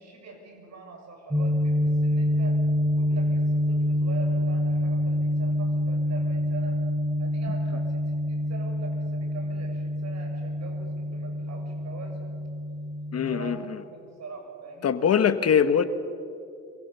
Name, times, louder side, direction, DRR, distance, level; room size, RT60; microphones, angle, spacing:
voice 1, 0.0-2.6 2.9-6.8 7.2-12.3 13.2-15.0, right 4 dB, 60° right, 3 dB, 6.8 m, -43 dB
sound 1, 1.3-13.6, left 1 dB, 10° right, 3.1 m, -26 dB
voice 2, 13.1-13.8 14.8-15.8, left 7 dB, 55° left, 11 dB, 1.4 m, -22 dB
26.0 x 25.0 x 7.0 m, 2.5 s
cardioid pair, 90°, 30 cm